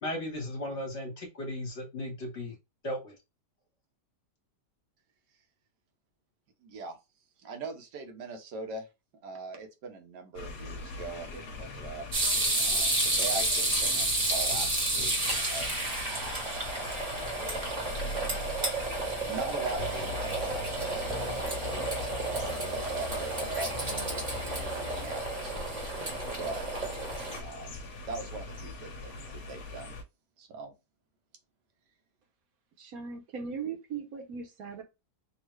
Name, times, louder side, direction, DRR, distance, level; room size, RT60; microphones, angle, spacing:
voice 1, 0.0-2.5 2.8-3.1, left 1 dB, 45° left, 1.3 m, -36 dB
voice 2, 6.6-7.0 7.4-8.9 9.2-12.0 12.6-16.7 17.5-17.9 19.1-21.9 22.2-25.5 26.2-26.7 27.2-29.9 30.4-30.7, right 3 dB, 90° right, 1.4 m, -41 dB
sound 1, 10.3-30.0, left 3 dB, 75° left, 1.3 m, -42 dB
sound 2, 12.1-27.4, right 2 dB, 30° right, 0.8 m, -31 dB
sound 3, 19.8-25.1, left 4 dB, 20° left, 0.8 m, -41 dB
voice 3, 32.8-34.8, right 6 dB, 65° right, 1.1 m, -38 dB
3.6 x 2.4 x 3.1 m
omnidirectional pair, 1.8 m